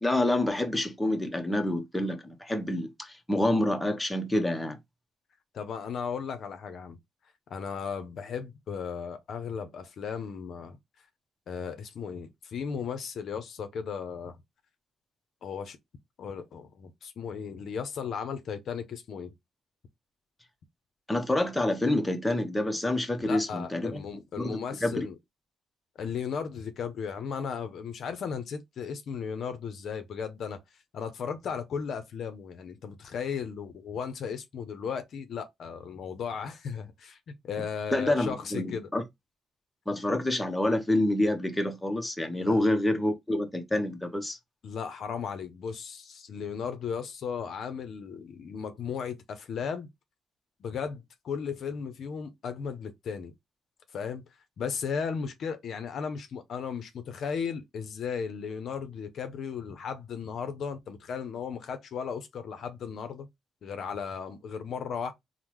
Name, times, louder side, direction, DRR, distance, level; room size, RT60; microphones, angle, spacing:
voice 1, 0.0-4.8 21.1-24.0 24.4-25.1 37.9-39.0 39.9-44.4, left 1 dB, 10° left, 0.6 m, -27 dB
voice 2, 5.5-7.0 7.5-10.8 11.5-14.4 15.4-15.8 16.2-19.3 23.2-25.1 26.0-30.6 30.9-37.2 37.4-38.9 42.4-42.6 44.6-49.9 50.6-53.3 53.9-54.2 54.6-63.3 63.6-65.1, left 6 dB, 65° left, 0.5 m, -36 dB
3.5 x 2.0 x 2.9 m
cardioid pair, 90°, 0 cm